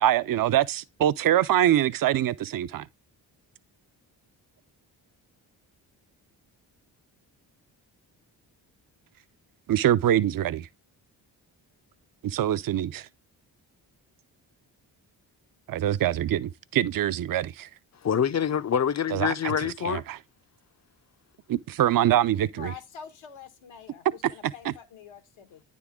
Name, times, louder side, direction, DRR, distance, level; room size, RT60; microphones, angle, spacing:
voice 1, 0.0-2.9 9.7-10.7 12.2-13.1 15.7-17.7 19.1-20.2 21.5-22.7, right 11 dB, 45° right, 0.5 m, -24 dB
voice 2, 18.0-20.0, left 8 dB, 35° left, 0.6 m, -26 dB
voice 3, 22.6-25.6, left 7 dB, 80° left, 1.4 m, -45 dB
9.6 x 3.8 x 3.6 m
supercardioid pair, 45°, 48 cm